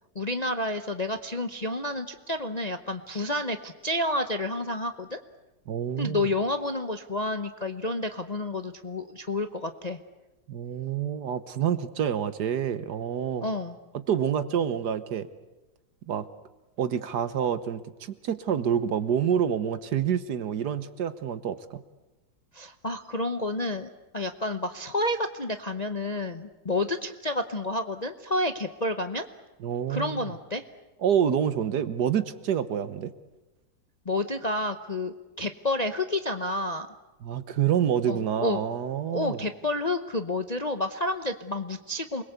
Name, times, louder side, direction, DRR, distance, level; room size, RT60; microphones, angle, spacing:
voice 1, 0.1-5.2 6.0-10.0 13.4-13.8 22.5-29.3 29.9-30.6 34.1-36.9 38.1-38.6 39.1-42.2, left 2 dB, 35° left, 7 dB, 0.7 m, -30 dB
voice 2, 5.7-6.3 10.5-13.5 14.1-15.3 16.1-16.3 16.8-21.8 29.6-30.2 31.0-33.1 37.2-39.4, right 8 dB, 65° right, 13 dB, 1.6 m, -27 dB
28.5 x 21.5 x 8.2 m, 1.1 s
omnidirectional pair, 2.0 m